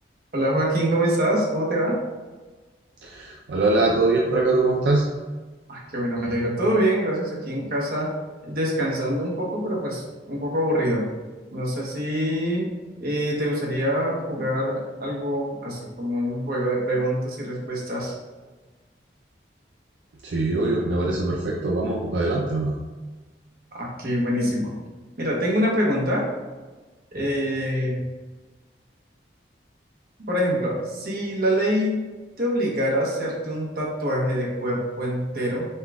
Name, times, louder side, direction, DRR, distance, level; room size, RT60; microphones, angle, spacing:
voice 1, 0.3-2.0 5.7-8.1 8.4-11.0 11.5-12.7 13.0-18.1 23.7-24.7 25.2-26.3 27.1-28.0 30.2-32.1 32.4-35.7, equal, 55° right, -3 dB, 1.0 m, -25 dB
voice 2, 3.0-5.1 20.2-22.7, right 2 dB, 80° right, -2 dB, 0.5 m, -22 dB
5.5 x 2.4 x 3.5 m, 1.3 s
head